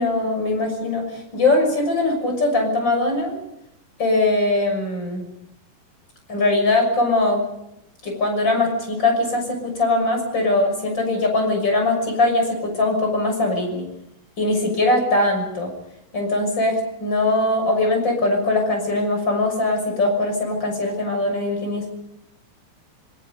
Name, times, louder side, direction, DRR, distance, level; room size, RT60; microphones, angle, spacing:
voice 1, 0.0-3.3 4.0-5.3 6.3-7.4 8.0-13.9 14.4-15.7 16.1-21.9, left 2 dB, 25° left, 3 dB, 6.9 m, -21 dB
26.0 x 25.0 x 5.3 m, 0.84 s
omnidirectional pair, 4.4 m